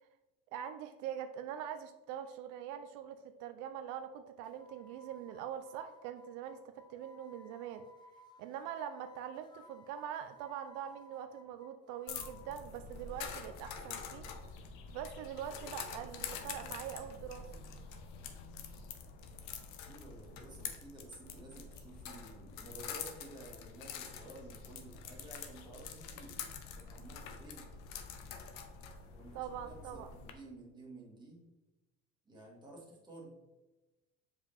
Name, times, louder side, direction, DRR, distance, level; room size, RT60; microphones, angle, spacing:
voice 1, 0.5-7.9 8.4-14.3 14.9-17.5 29.3-30.1, right 9 dB, 80° right, 8 dB, 0.6 m, -43 dB
sound 1, 4.4-12.6, left 1 dB, 15° left, 0.5 m, -60 dB
sound 2, 12.1-30.3, left 6 dB, 80° left, 1.0 m, -46 dB
voice 2, 19.9-26.4 26.6-27.7 29.1-31.4 32.3-33.4, right 2 dB, 15° right, -3 dB, 1.9 m, -53 dB
7.2 x 5.4 x 3.5 m, 1.0 s
cardioid pair, 170°, 31 cm